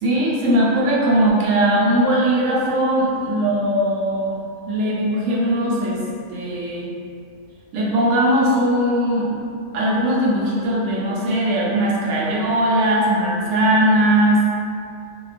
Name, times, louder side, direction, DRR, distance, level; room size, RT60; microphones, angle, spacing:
voice 1, 0.0-4.4 4.7-6.0 6.3-6.9 7.7-9.3 9.7-14.4, right 1 dB, 75° right, -5 dB, 1.0 m, -19 dB
2.8 x 2.2 x 2.4 m, 2.4 s
omnidirectional pair, 1.4 m